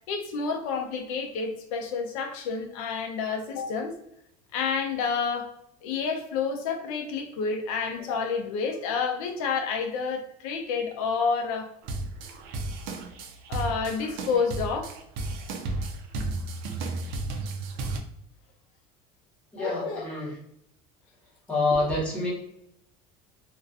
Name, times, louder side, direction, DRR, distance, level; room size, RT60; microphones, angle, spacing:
voice 1, 0.1-3.9 4.5-5.5 5.8-11.7 13.5-14.9 19.6-20.0, left 5 dB, 90° left, 4 dB, 0.6 m, -29 dB
sound 1, 11.8-18.0, right 2 dB, 65° right, 0.4 m, -33 dB
voice 2, 19.5-20.4 21.5-22.3, left 2 dB, 5° left, -6 dB, 1.0 m, -27 dB
2.4 x 2.2 x 2.5 m, 0.75 s
cardioid pair, 140°, 17 cm